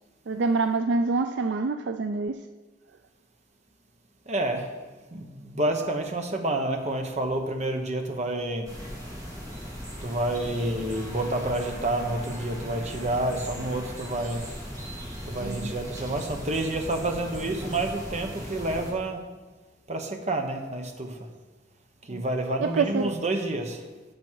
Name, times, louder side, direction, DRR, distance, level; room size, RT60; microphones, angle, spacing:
voice 1, 0.3-2.4 15.4-15.7 22.1-22.2 22.6-23.2, right 4 dB, 65° right, 8 dB, 0.4 m, -26 dB
voice 2, 4.3-4.6 5.1-5.2 5.5-8.7 10.0-14.4 15.3-19.2 19.9-21.1 22.1-23.8, right 2 dB, 40° right, 4 dB, 1.2 m, -29 dB
sound 1, 8.6-18.9, equal, 20° right, 2.3 m, -38 dB
12.0 x 7.3 x 4.6 m, 1.3 s
head